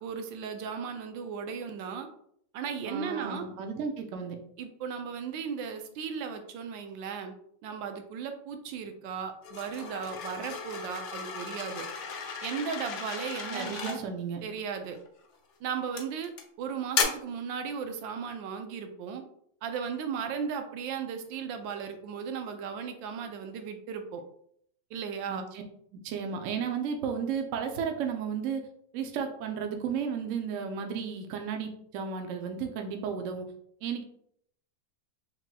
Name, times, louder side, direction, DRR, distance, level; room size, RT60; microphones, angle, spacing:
voice 1, 0.0-2.1 2.5-3.5 4.6-7.3 7.6-11.8 12.4-14.0 14.4-15.0 15.6-16.3 16.6-19.2 19.6-24.2 24.9-25.5, right 6 dB, 90° right, 6 dB, 1.3 m, -36 dB
voice 2, 2.8-4.4 13.5-14.4 25.3-25.6 25.9-28.6 28.9-33.5 33.8-34.0, right 6 dB, 70° right, 4 dB, 0.7 m, -33 dB
sound 1, 9.4-14.0 14.9-15.3 16.0-16.4 16.9-17.0, left 6 dB, 70° left, 0.7 m, -35 dB
5.6 x 2.9 x 2.2 m, 0.67 s
omnidirectional pair, 2.0 m